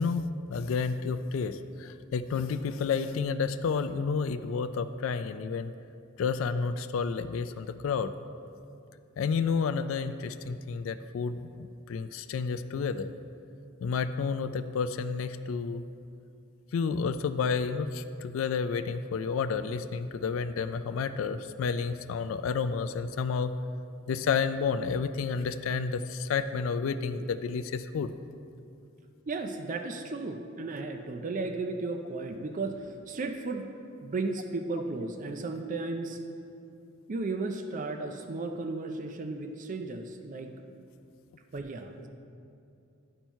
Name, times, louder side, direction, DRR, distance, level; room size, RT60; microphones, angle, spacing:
voice 1, 0.0-5.7 6.2-8.1 9.2-13.1 13.8-15.8 16.7-23.5 24.1-28.1, left 5 dB, 70° left, 10 dB, 0.3 m, -30 dB
voice 2, 29.3-33.7 34.0-36.2 37.1-40.6 41.5-42.1, right 3 dB, 40° right, 5 dB, 0.4 m, -34 dB
12.0 x 4.4 x 4.5 m, 2.5 s
head